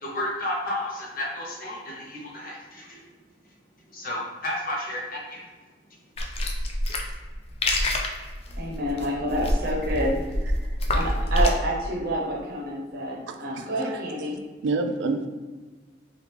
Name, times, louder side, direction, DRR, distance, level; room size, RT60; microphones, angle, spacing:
voice 1, 0.0-3.0 3.9-5.4, left 1 dB, 50° left, -3 dB, 0.8 m, -32 dB
sound 1, 6.2-11.5, left 1 dB, 35° left, 0.3 m, -26 dB
voice 2, 8.6-14.4, equal, 55° right, -1 dB, 0.7 m, -29 dB
voice 3, 13.3-14.0 14.6-15.3, right 3 dB, 85° right, 7 dB, 0.3 m, -28 dB
3.2 x 2.3 x 3.3 m, 1.3 s
head